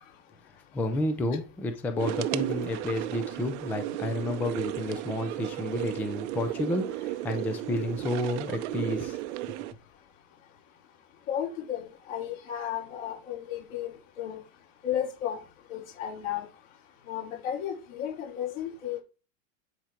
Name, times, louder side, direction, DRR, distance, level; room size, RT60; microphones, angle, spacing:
voice 1, 0.7-9.2 9.5-9.6, left 1 dB, 5° left, 0.3 m, -31 dB
sound 1, 2.0-9.7, right 15 dB, 55° right, 0.7 m, -34 dB
voice 2, 11.3-13.9 14.2-14.4 14.8-15.4 15.7-16.4 17.1-19.0, left 10 dB, 65° left, 4.8 m, -33 dB
10.0 x 4.5 x 5.0 m
supercardioid pair, 155°, 42 cm